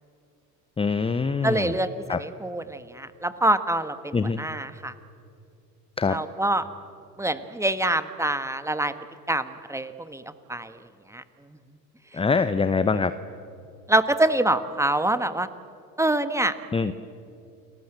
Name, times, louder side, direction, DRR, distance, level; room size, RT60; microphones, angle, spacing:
voice 1, 0.8-1.8 2.1-2.2 4.1-4.4 6.0-6.2 12.1-13.1 16.7-16.9, left 4 dB, 10° left, 12 dB, 0.8 m, -24 dB
voice 2, 1.4-4.9 6.1-6.6 7.2-8.9 9.3-10.2 10.5-10.8 11.1-11.2 13.9-15.5 16.0-16.5, right 1 dB, 5° right, 11 dB, 1.4 m, -25 dB
29.5 x 19.5 x 7.9 m, 2.5 s
hypercardioid pair, 75°, 50 cm